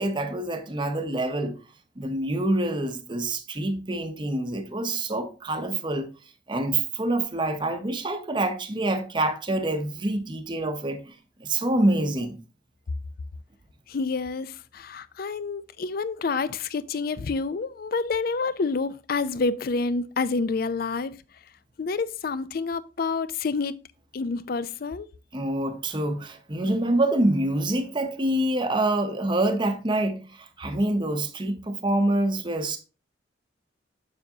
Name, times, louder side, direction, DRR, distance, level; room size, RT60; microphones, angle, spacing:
voice 1, 0.0-1.6 2.0-6.1 6.5-11.1 11.4-12.4 25.3-32.8, right 1 dB, 25° right, 0.7 m, -26 dB
voice 2, 13.9-21.1 21.8-23.8 24.1-25.1, left 4 dB, 50° left, 0.4 m, -28 dB
7.0 x 6.6 x 2.8 m
head